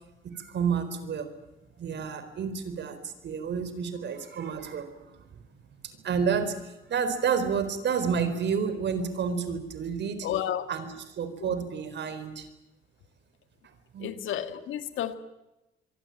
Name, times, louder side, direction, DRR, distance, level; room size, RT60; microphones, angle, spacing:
voice 1, 0.2-1.3 1.8-5.4 5.8-10.3 10.7-12.5 13.9-14.2, right 6 dB, 60° right, 11 dB, 4.3 m, -30 dB
voice 2, 10.2-10.7 11.4-11.5 14.0-15.1, left 10 dB, 80° left, 10 dB, 2.0 m, -31 dB
25.0 x 23.5 x 8.9 m, 0.96 s
cardioid pair, 90°, 20 cm